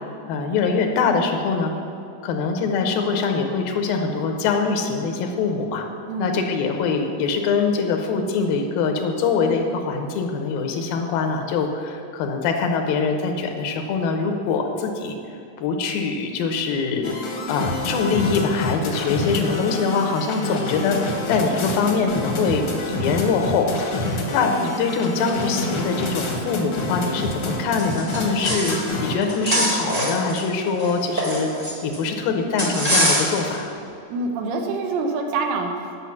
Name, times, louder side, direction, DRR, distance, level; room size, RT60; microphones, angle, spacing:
voice 1, 0.3-1.7 2.2-5.8 6.2-15.2 15.6-17.2 17.5-23.7 24.3-33.7, left 5 dB, 85° left, 4 dB, 2.7 m, -23 dB
voice 2, 6.1-6.4 34.1-36.0, right 3 dB, 80° right, 2 dB, 2.6 m, -26 dB
sound 1, 17.0-29.1, left 1 dB, 60° left, 1.4 m, -27 dB
sound 2, 27.8-28.9 29.2-32.0 32.6-33.6, equal, 40° right, 0.5 m, -23 dB
9.9 x 6.9 x 5.8 m, 2.6 s
omnidirectional pair, 4.1 m